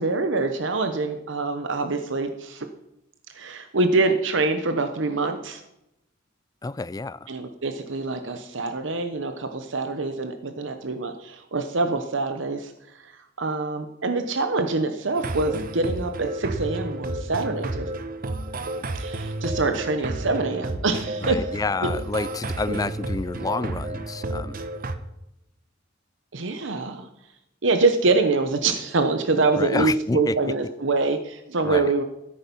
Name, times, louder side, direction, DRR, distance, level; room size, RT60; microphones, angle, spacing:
voice 1, 0.0-2.7 3.3-5.6 7.3-12.7 13.0-13.1 13.4-17.9 18.9-21.5 21.8-21.9 22.7-22.9 26.3-27.1 27.6-32.0, right 3 dB, 75° right, 1.0 m, -25 dB
voice 2, 6.6-7.2 21.2-24.6 29.5-30.3 31.6-31.9, left 3 dB, 20° left, 0.4 m, -29 dB
sound 1, 15.1-25.0, right 2 dB, 50° right, 0.9 m, -31 dB
14.5 x 8.8 x 5.4 m
head